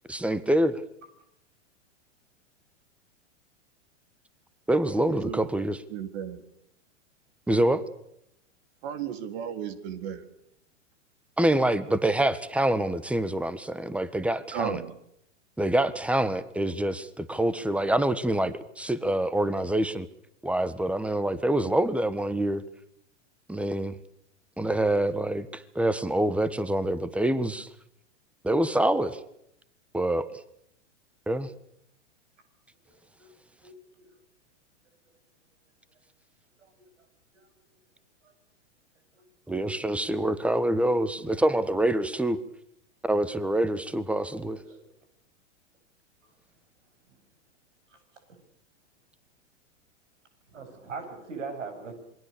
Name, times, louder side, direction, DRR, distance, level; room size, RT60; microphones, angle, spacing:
voice 1, 0.1-0.8 4.7-5.8 7.5-7.8 11.4-14.8 15.6-20.1 20.4-22.6 23.5-24.0 24.6-27.7 28.4-29.2 29.9-30.3 31.3-31.5 39.5-42.4 43.1-44.6, right 1 dB, 5° right, 1.5 m, -26 dB
voice 2, 5.1-5.4 5.9-6.4 8.8-10.3 14.5-14.9, right 8 dB, 55° right, 3.5 m, -34 dB
voice 3, 50.5-51.9, right 4 dB, 80° right, 8.0 m, -39 dB
27.0 x 22.5 x 6.9 m
hypercardioid pair, 110°, 37 cm